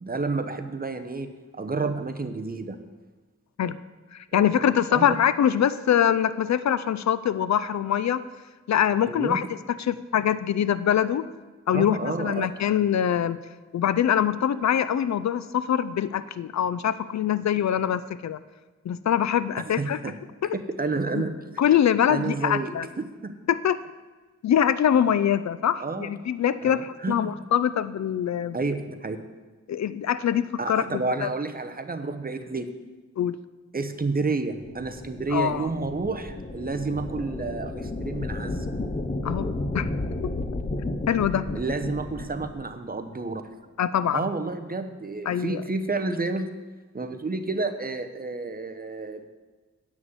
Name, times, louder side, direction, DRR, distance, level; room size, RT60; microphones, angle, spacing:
voice 1, 0.0-2.8 4.3-4.6 4.9-5.1 9.1-9.4 11.7-12.5 19.6-20.2 20.5-21.3 22.1-22.7 23.0-23.3 25.8-26.1 26.6-27.3 28.5-29.3 30.6-32.7 33.7-38.7 41.5-43.4 44.1-46.5 46.9-49.3, right 3 dB, 30° right, 7 dB, 0.9 m, -30 dB
voice 2, 4.1-8.2 8.7-11.3 11.7-13.4 13.7-18.4 18.9-20.0 20.4-20.5 21.1-21.2 21.6-22.9 23.5-23.8 24.4-28.6 29.7-31.3 33.2-33.4 35.3-35.7 39.2-39.9 41.1-41.5 43.8-44.2 45.3-45.6, left 9 dB, 65° left, 15 dB, 0.5 m, -24 dB
sound 1, 34.6-42.7, left 2 dB, 25° left, 0.9 m, -32 dB
9.5 x 6.2 x 7.8 m, 1.3 s
cardioid pair, 75°, 30 cm